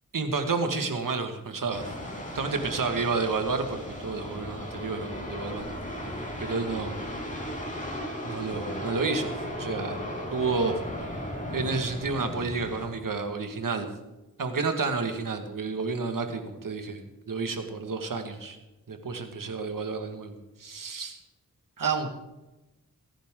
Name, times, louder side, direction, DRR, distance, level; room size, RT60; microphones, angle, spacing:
voice 1, 0.1-1.8 2.3-5.8 6.4-7.0 8.2-10.0 10.3-10.8 11.5-13.9 14.4-17.0 17.3-18.6 18.9-21.2 21.8-22.1, right 4 dB, 75° right, 5 dB, 1.9 m, -30 dB
sound 1, 1.7-12.9, equal, 25° left, 5.2 m, -36 dB
23.5 x 10.0 x 3.8 m, 1.0 s
cardioid pair, 45°, 33 cm